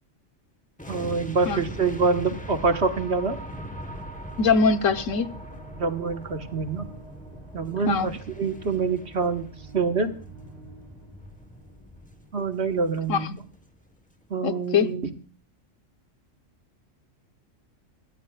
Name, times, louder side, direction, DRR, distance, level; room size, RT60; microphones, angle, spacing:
sound 1, 0.8-13.9 14.2-14.4, equal, 5° left, 1.1 m, -42 dB
voice 1, 0.9-3.4 5.8-6.9 7.5-9.5 9.7-10.1 12.3-13.3 14.3-15.1, right 4 dB, 55° right, 1.6 m, -26 dB
sound 2, 2.1-13.0, right 3 dB, 30° right, 2.2 m, -45 dB
voice 2, 4.4-5.3 7.9-8.1 13.1-13.4 14.4-14.9, left 5 dB, 85° left, 1.3 m, -22 dB
24.5 x 13.5 x 2.4 m
omnidirectional pair, 1.3 m